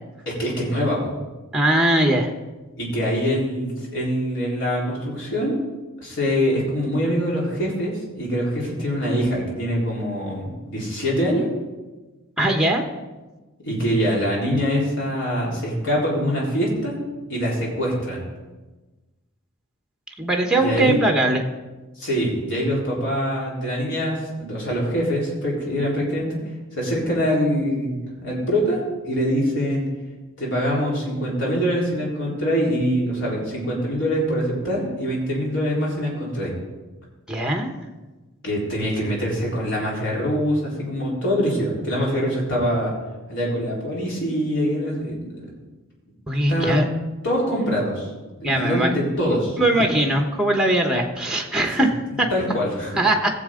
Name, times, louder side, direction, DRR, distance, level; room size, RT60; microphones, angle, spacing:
voice 1, 0.3-1.1 2.8-5.6 6.0-11.5 13.6-17.0 17.3-18.2 20.6-21.0 22.0-26.4 26.8-29.8 30.4-36.5 38.4-42.9 43.3-45.2 46.5-46.8 47.2-48.1 48.4-49.6 51.8-51.9 52.3-53.0, equal, 60° left, -4 dB, 3.8 m, -24 dB
voice 2, 1.5-2.3 12.4-12.8 20.2-21.4 37.3-37.7 46.3-46.9 48.4-48.9 49.6-52.3 53.0-53.3, right 1 dB, 5° right, 3 dB, 0.9 m, -20 dB
18.0 x 7.4 x 3.7 m, 1.2 s
head